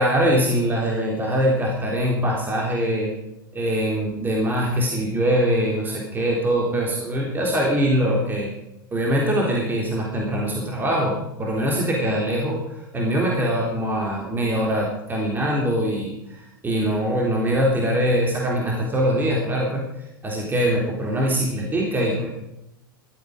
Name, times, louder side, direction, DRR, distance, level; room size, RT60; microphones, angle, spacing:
voice 1, 0.0-3.1 3.5-8.5 8.9-19.8 20.2-22.3, equal, 15° right, -2 dB, 3.4 m, -23 dB
15.5 x 13.0 x 5.1 m, 0.88 s
hypercardioid pair, 95°, 12 cm